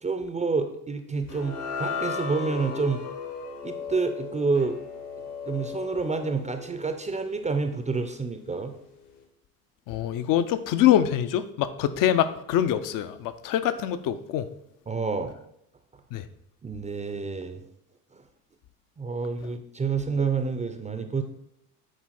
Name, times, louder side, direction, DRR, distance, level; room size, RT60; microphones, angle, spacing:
voice 1, 0.0-3.0 3.6-4.8 5.4-8.7 14.9-15.4 16.6-17.6 19.0-21.2, right 4 dB, 15° right, 8 dB, 0.6 m, -28 dB
sound 1, 1.3-7.7, left 5 dB, 70° left, 2.0 m, -36 dB
voice 2, 9.9-14.5 16.1-16.3, left 11 dB, 45° left, 12 dB, 0.7 m, -24 dB
9.2 x 4.5 x 4.3 m, 0.78 s
figure-of-eight pair, 65°, 47 cm